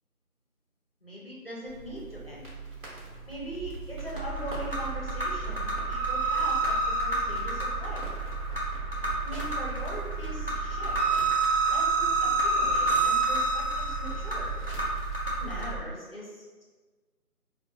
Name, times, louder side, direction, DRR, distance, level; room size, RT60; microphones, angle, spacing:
voice 1, 1.0-2.5 3.3-8.0 9.2-11.0 11.7-14.5 15.4-16.6, equal, 40° left, -5 dB, 0.5 m, -40 dB
sound 1, 1.7-15.7, right 4 dB, 60° right, 1.1 m, -43 dB
sound 2, 4.2-15.8, right 3 dB, 40° right, 0.5 m, -28 dB
2.7 x 2.1 x 2.6 m, 1.4 s
figure-of-eight pair, 170°, 46 cm